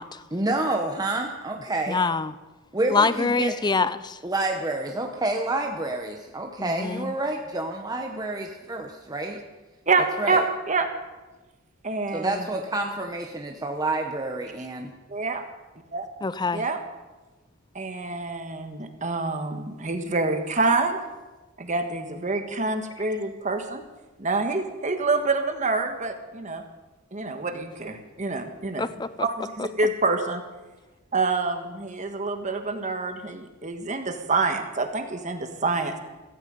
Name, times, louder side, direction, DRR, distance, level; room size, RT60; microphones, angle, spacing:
voice 1, 0.3-2.0 2.7-3.5 4.2-9.4 10.2-10.4 12.1-14.9, right 2 dB, 20° right, 2 dB, 1.0 m, -28 dB
voice 2, 1.9-2.3 2.9-4.2 6.6-7.1 16.2-16.6 28.8-29.1, left 4 dB, 20° left, 15 dB, 0.5 m, -25 dB
voice 3, 9.9-10.9 11.8-12.5 15.1-15.4 15.9-16.1 16.5-16.8 17.7-21.0 21.6-23.8 24.2-26.6 27.1-28.9 29.2-30.4 31.1-36.0, right 3 dB, 35° right, 6 dB, 1.5 m, -27 dB
16.0 x 14.5 x 5.3 m, 1.2 s
head